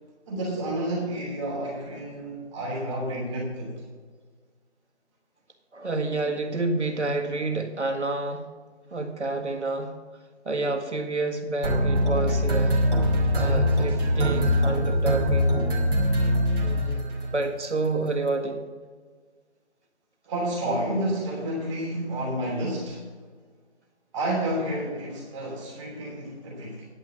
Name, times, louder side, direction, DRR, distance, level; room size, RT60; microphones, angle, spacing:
voice 1, 0.3-3.7 20.3-23.1 24.1-26.9, right 1 dB, 25° right, -4 dB, 3.1 m, -30 dB
voice 2, 5.7-8.5 8.9-9.9 10.5-12.8 13.3-15.6 16.6-17.0 17.3-18.7, right 2 dB, 85° right, 5 dB, 1.8 m, -29 dB
sound 1, 11.6-17.3, equal, 50° right, 2.8 m, -23 dB
10.5 x 6.1 x 7.0 m, 1.5 s
figure-of-eight pair, 155°, 34 cm